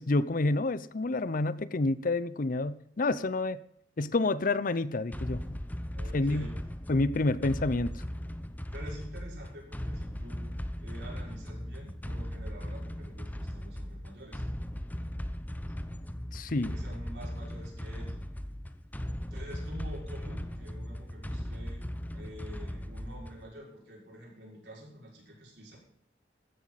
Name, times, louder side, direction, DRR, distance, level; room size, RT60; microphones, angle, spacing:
voice 1, 0.0-3.6 4.0-5.6 6.1-6.5 6.9-7.9 16.3-16.7, left 2 dB, 50° left, 0.7 m, -28 dB
sound 1, 5.1-23.5, equal, 10° left, 0.8 m, -38 dB
voice 2, 5.9-6.6 8.7-10.5 10.8-14.4 16.7-18.2 19.3-21.9 22.1-25.8, equal, 70° right, 5.8 m, -47 dB
15.0 x 13.5 x 4.2 m
head